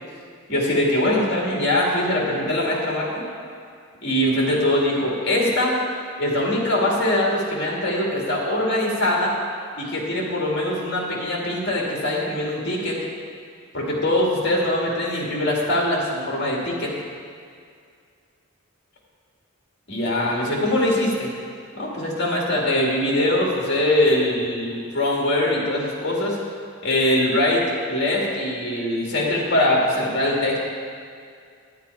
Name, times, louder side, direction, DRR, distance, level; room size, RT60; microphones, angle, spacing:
voice 1, 0.5-3.2 4.0-5.8 6.2-9.3 9.8-13.0 13.7-16.9 19.9-21.3 21.7-26.4 26.8-27.6 27.9-30.6, left 1 dB, 50° left, -3 dB, 2.3 m, -22 dB
9.9 x 9.6 x 4.7 m, 2.2 s
head